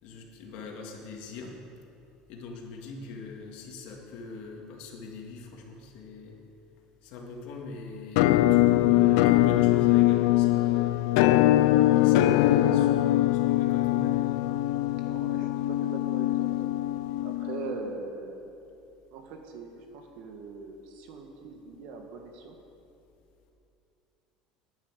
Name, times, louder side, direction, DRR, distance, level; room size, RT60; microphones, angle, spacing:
voice 1, 0.0-1.6 2.3-6.4 7.0-11.0 11.9-14.3, left 3 dB, 60° left, 1 dB, 2.1 m, -41 dB
Musical instrument, 8.2-17.9, left 15 dB, 90° left, 0.4 m, -22 dB
voice 2, 15.0-16.5 17.2-18.5 19.1-22.6, right 4 dB, 60° right, 4 dB, 1.7 m, -41 dB
10.0 x 9.5 x 8.2 m, 2.7 s
cardioid pair, 165°, 2 cm